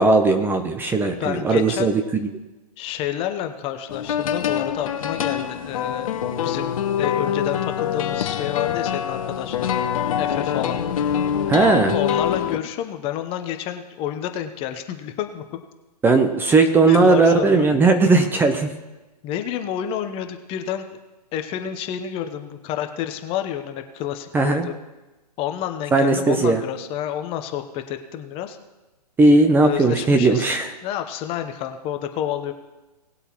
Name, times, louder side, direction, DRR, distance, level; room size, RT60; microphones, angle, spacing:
voice 1, 0.0-2.3 11.5-12.0 16.0-18.7 24.3-24.7 25.9-26.6 29.2-30.7, right 3 dB, 10° right, 6 dB, 0.7 m, -17 dB
voice 2, 1.2-1.9 2.8-9.6 10.2-10.8 11.9-15.6 16.9-17.7 19.2-20.9 21.3-24.7 25.4-28.6 29.6-30.5 30.8-32.5, left 10 dB, 25° left, 8 dB, 1.0 m, -29 dB
sound 1, 3.9-12.6, left 9 dB, 55° left, 1.2 m, -25 dB
19.0 x 7.9 x 3.1 m, 1.1 s
hypercardioid pair, 125°, 21 cm